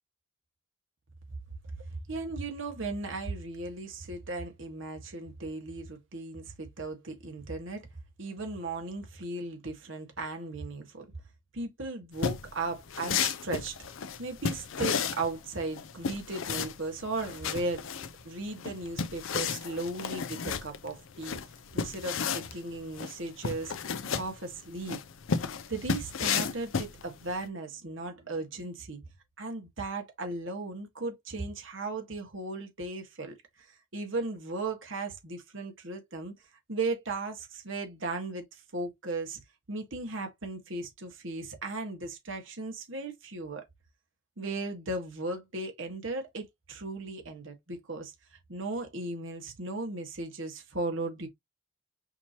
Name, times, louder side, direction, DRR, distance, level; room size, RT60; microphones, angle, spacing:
voice 1, 1.8-7.9 8.2-11.0 11.5-13.8 14.2-17.8 18.2-21.4 21.7-23.7 24.1-25.0 25.7-29.0 29.4-33.3 33.9-36.3 36.7-39.4 39.7-43.6 44.4-51.3, right 2 dB, 80° right, 1.6 m, -36 dB
sound 1, 12.1-27.4, left 6 dB, 85° left, 0.6 m, -33 dB
5.7 x 3.0 x 2.8 m
head